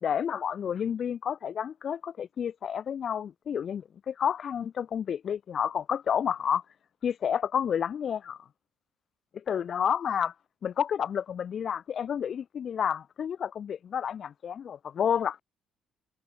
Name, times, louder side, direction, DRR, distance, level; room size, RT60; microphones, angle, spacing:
voice 1, 0.0-6.6 7.0-8.4 9.3-10.3 10.6-15.4, left 8 dB, 50° left, 2.9 m, -30 dB
cardioid pair, 110°, 0 cm